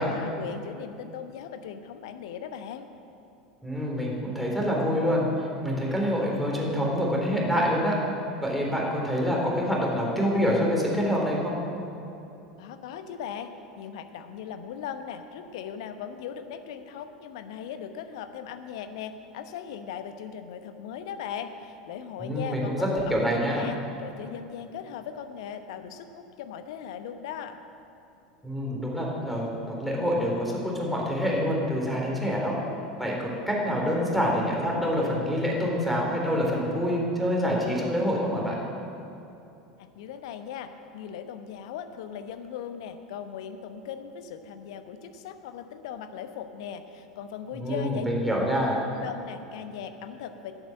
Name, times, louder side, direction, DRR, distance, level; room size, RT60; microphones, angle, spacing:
voice 1, 0.0-2.9 12.6-13.5 13.8-27.6 39.8-50.5, left 8 dB, 60° left, 9 dB, 1.0 m, -39 dB
voice 2, 3.6-8.0 8.4-11.6 22.2-23.7 28.4-32.5 33.0-38.6 47.5-48.9, equal, ahead, -3 dB, 3.7 m, -26 dB
12.0 x 9.1 x 7.5 m, 2.9 s
figure-of-eight pair, 80°, 3 cm